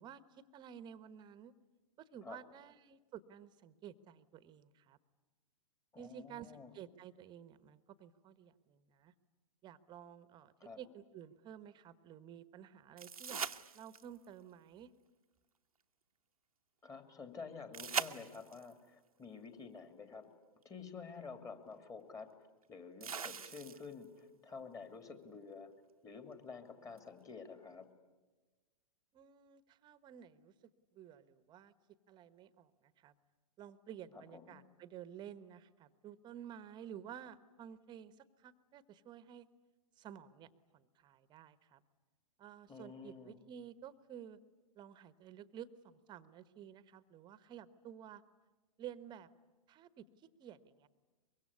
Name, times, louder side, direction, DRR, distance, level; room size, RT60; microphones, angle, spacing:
voice 1, 0.0-1.5 2.0-5.0 6.0-9.1 9.6-13.4 13.7-14.9 29.1-30.5 30.9-31.7 32.1-33.1 33.6-39.5 40.0-41.8 42.4-44.4 44.7-48.2 48.8-49.3 49.7-50.1 50.4-50.9, right 9 dB, 25° right, 15 dB, 1.2 m, -52 dB
voice 2, 5.9-6.7 10.6-10.8 16.8-20.3 20.6-22.3 22.7-25.7 26.0-27.9 34.1-34.6 42.7-43.4, left 5 dB, 20° left, 7 dB, 2.7 m, -50 dB
sound 1, 13.0-14.3 17.7-18.7 20.6-20.7 23.0-24.0 27.0-27.1, right 6 dB, 80° right, 1.0 m, -41 dB
24.5 x 23.0 x 9.8 m, 1.2 s
figure-of-eight pair, 110°, 18 cm